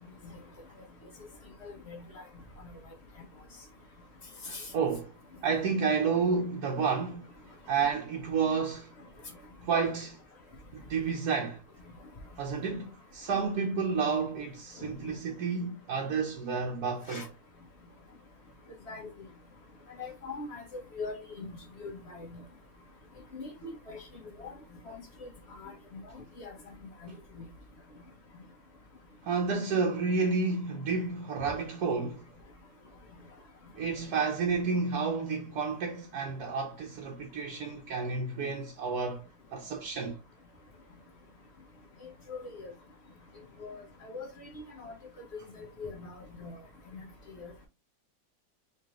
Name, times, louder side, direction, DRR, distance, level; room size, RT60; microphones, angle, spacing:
voice 1, 1.6-2.2 2.6-2.7 4.4-4.7 17.1-17.3 18.9-19.1 20.0-21.6 21.8-22.4 23.3-24.0 24.4-24.5 24.9-25.3 25.6-26.0 26.4-26.5 27.4-27.5 42.3-42.7 43.6-43.8 44.0-44.9 45.6-46.6 46.9-47.0 47.3-47.5, left 3 dB, 45° left, 1.3 m, -42 dB
voice 2, 4.4-5.1 5.4-7.3 7.7-8.9 9.6-10.2 10.7-11.6 12.4-17.2 29.2-32.3 33.8-39.2 39.5-40.2, right 5 dB, 75° right, 1.4 m, -30 dB
4.3 x 3.5 x 2.9 m
omnidirectional pair, 1.7 m